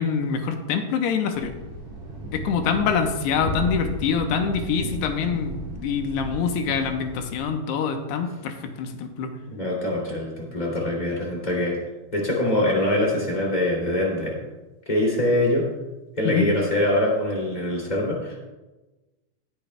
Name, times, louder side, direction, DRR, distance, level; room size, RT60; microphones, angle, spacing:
voice 1, 0.0-1.5 2.3-9.3 16.2-16.5, left 6 dB, 80° left, 5 dB, 2.8 m, -25 dB
Thunder, 1.3-7.4, right 1 dB, 45° right, 3.4 m, -34 dB
voice 2, 9.5-11.8 12.1-14.3 14.9-15.7 16.2-18.4, left 1 dB, 15° left, -3 dB, 1.9 m, -23 dB
19.0 x 10.0 x 2.3 m, 1.1 s
omnidirectional pair, 5.1 m